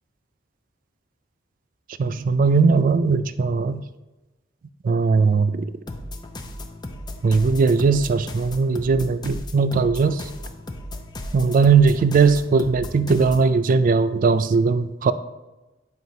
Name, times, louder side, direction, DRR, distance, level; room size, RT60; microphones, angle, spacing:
voice 1, 2.0-3.8 4.8-5.7 7.2-10.3 11.3-15.1, right 4 dB, 45° right, 13 dB, 0.3 m, -19 dB
sound 1, 5.9-13.5, left 1 dB, 20° left, 0.4 m, -36 dB
7.6 x 5.2 x 2.8 m, 1.1 s
head